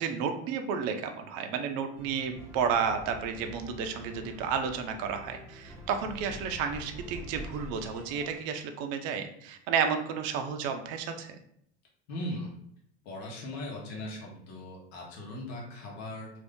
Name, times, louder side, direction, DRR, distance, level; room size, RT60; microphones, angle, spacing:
voice 1, 0.0-11.4, right 6 dB, 50° right, 6 dB, 0.5 m, -32 dB
sound 1, 1.9-8.4, equal, 5° right, 0.6 m, -46 dB
voice 2, 12.1-12.5 13.0-16.3, left 1 dB, 70° left, -3 dB, 1.1 m, -39 dB
2.6 x 2.6 x 3.5 m, 0.71 s
supercardioid pair, 145°, 33 cm